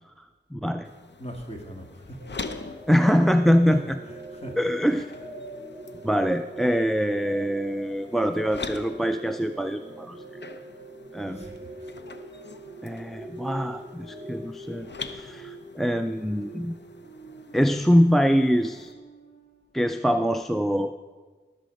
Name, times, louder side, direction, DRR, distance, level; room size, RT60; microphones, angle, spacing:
voice 1, 0.5-0.9 2.9-4.0 4.6-5.1 6.0-10.2 11.1-11.5 12.8-16.7 17.5-18.9 19.7-20.9, equal, ahead, 8 dB, 0.4 m, -24 dB
sound 1, 0.8-18.9, left 4 dB, 65° left, 0.7 m, -44 dB
voice 2, 1.2-2.2 3.6-5.3 11.2-11.9, equal, 35° left, 1 dB, 2.1 m, -41 dB
sound 2, 2.2-19.6, right 2 dB, 50° left, 2.8 m, -47 dB
sound 3, 3.4-15.3, right 1 dB, 20° right, 0.9 m, -44 dB
19.0 x 6.5 x 5.2 m, 1.4 s
wide cardioid pair, 85°, 19 cm